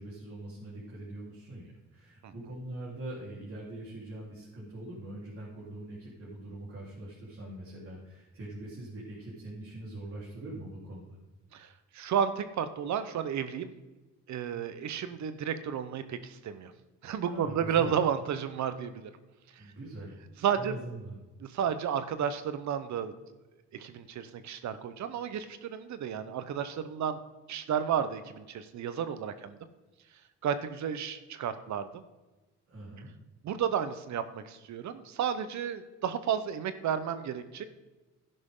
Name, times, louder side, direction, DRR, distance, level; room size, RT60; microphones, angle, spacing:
voice 1, 0.0-11.2 17.3-17.9 19.6-20.2 20.5-21.2 32.7-33.1, right 1 dB, 50° right, -6 dB, 3.9 m, -43 dB
voice 2, 11.9-13.7 14.3-16.7 17.0-19.1 20.4-20.7 21.4-23.1 23.7-27.2 27.5-29.6 30.4-31.9 33.4-37.6, right 8 dB, 65° right, 11 dB, 1.0 m, -32 dB
12.0 x 10.5 x 3.8 m, 1.2 s
cardioid pair, 90°, 30 cm